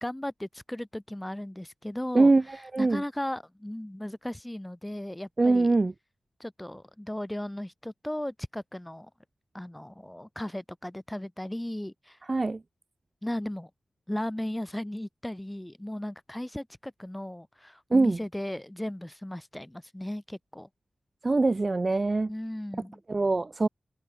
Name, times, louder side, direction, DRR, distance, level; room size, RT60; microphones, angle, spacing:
voice 1, 0.0-2.3 2.8-5.7 6.4-9.1 9.5-12.2 13.2-13.7 14.1-20.7 22.3-23.0, left 1 dB, 10° left, 2.7 m, -36 dB
voice 2, 5.4-5.9 12.3-12.6 17.9-18.2 21.2-22.3 23.1-23.7, right 3 dB, 40° right, 0.4 m, -23 dB
cardioid pair, 50°, 0 cm